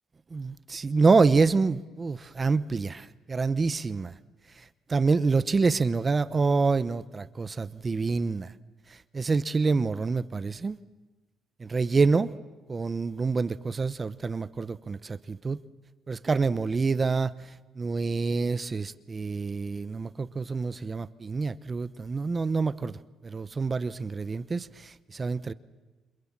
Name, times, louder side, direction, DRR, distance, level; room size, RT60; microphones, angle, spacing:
voice 1, 0.3-4.1 4.9-8.5 9.1-10.8 11.6-12.3 12.7-15.6 16.1-17.3 17.8-22.9 23.2-25.5, right 4 dB, 25° right, 0.9 m, -26 dB
29.0 x 27.5 x 7.4 m
cardioid pair, 120°, 0 cm